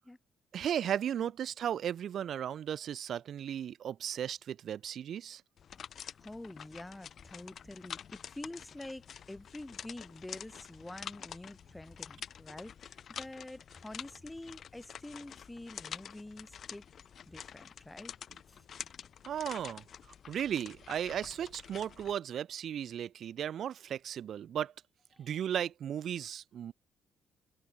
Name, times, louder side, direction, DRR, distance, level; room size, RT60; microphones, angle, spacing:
voice 1, 0.5-5.4 19.3-19.8 20.3-24.7 25.2-26.7, right 9 dB, 65° right, 0.6 m, -35 dB
sound 1, 5.6-22.1, left 8 dB, 55° left, 4.4 m, -48 dB
voice 2, 6.0-16.8 17.3-18.1 25.1-25.3, left 1 dB, 10° left, 1.5 m, -47 dB
cardioid pair, 90°, 0 cm